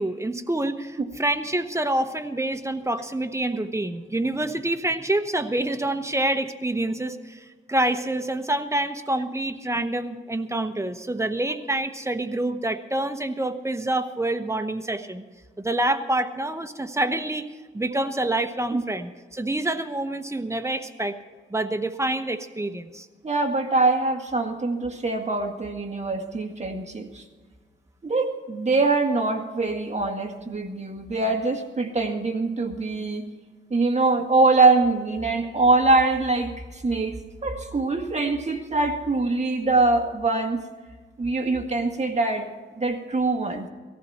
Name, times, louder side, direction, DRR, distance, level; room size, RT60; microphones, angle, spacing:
voice 1, 0.0-15.2 15.6-17.5 17.7-21.2 21.5-23.1, right 1 dB, 15° right, 8 dB, 1.1 m, -27 dB
voice 2, 23.2-27.2 28.0-33.2 33.7-37.2 37.4-40.6 41.2-42.5 42.8-43.7, right 3 dB, 35° right, 4 dB, 2.0 m, -23 dB
18.0 x 14.5 x 4.3 m, 1.4 s
cardioid pair, 80°, 21 cm